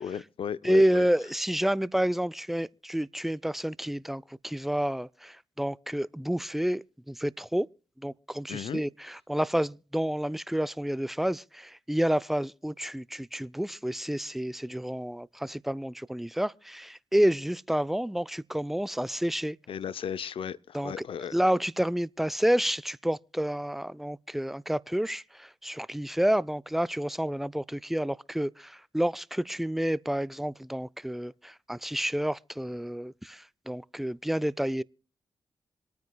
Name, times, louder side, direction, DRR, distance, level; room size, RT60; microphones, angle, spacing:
voice 1, 0.0-1.0 8.5-8.8 19.7-21.3, left 8 dB, 65° left, 0.6 m, -35 dB
voice 2, 0.6-7.7 8.0-19.6 20.7-21.0 21.3-34.8, equal, ahead, 0.4 m, -29 dB
26.0 x 9.3 x 2.3 m
supercardioid pair, 40°, 10 cm